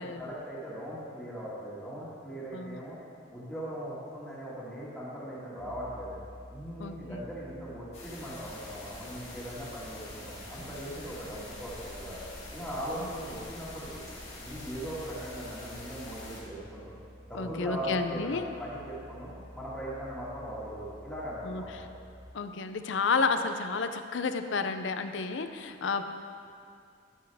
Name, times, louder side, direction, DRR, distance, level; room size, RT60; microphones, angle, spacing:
voice 1, 0.0-3.0 3.3-6.1 6.5-12.2 12.5-14.0 14.4-16.9 17.2-21.9, equal, 5° left, -9 dB, 1.9 m, -39 dB
sound 1, 5.6-22.2, equal, 20° right, 1.6 m, -51 dB
voice 2, 6.8-7.3 13.0-13.1 17.3-18.5 21.4-21.6 22.3-26.1, left 4 dB, 70° left, 8 dB, 0.5 m, -31 dB
sound 2, 7.9-16.4, left 2 dB, 30° left, 2.1 m, -46 dB
12.5 x 7.0 x 3.5 m, 2.3 s
head